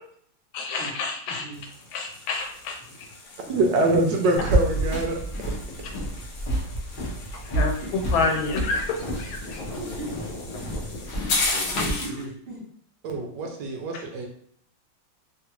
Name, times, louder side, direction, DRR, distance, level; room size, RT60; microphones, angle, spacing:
voice 1, 0.5-1.4 1.9-2.8 7.6-7.7 8.1-9.6 13.9-14.0, left 4 dB, 85° left, 2 dB, 1.4 m, -28 dB
voice 2, 1.3-1.7 3.4-4.8 7.5-8.2 9.8-10.2 11.5-12.6, right 1 dB, 40° right, -6 dB, 0.8 m, -38 dB
sound 1, 1.5-12.2, left 3 dB, 65° left, 1.3 m, -35 dB
voice 3, 3.5-5.2 13.0-14.3, right 2 dB, 75° right, 2 dB, 1.1 m, -24 dB
sound 2, 4.3-11.9, right 1 dB, 45° left, 0.6 m, -29 dB
3.3 x 2.4 x 2.9 m, 0.62 s
omnidirectional pair, 2.1 m